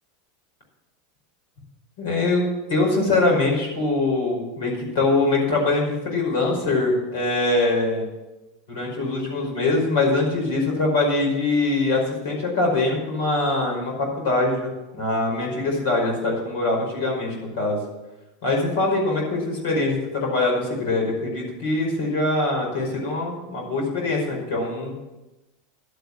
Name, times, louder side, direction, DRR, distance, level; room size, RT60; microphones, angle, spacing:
voice 1, 2.0-2.4 2.7-8.0 8.7-17.8 18.4-25.1, left 2 dB, 75° left, 0 dB, 5.2 m, -23 dB
12.0 x 8.2 x 7.4 m, 1.0 s
hypercardioid pair, 105°, 0 cm